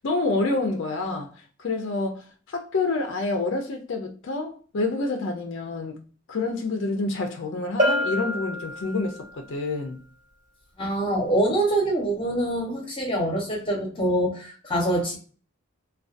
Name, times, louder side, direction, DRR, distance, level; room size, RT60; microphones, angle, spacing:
voice 1, 0.0-6.0 6.3-10.0, left 3 dB, 60° left, 0.4 m, -28 dB
Bell, 7.8-9.4, left 1 dB, 35° right, 0.7 m, -26 dB
voice 2, 10.8-15.2, right 1 dB, 25° left, 0.8 m, -25 dB
2.3 x 2.2 x 2.4 m
head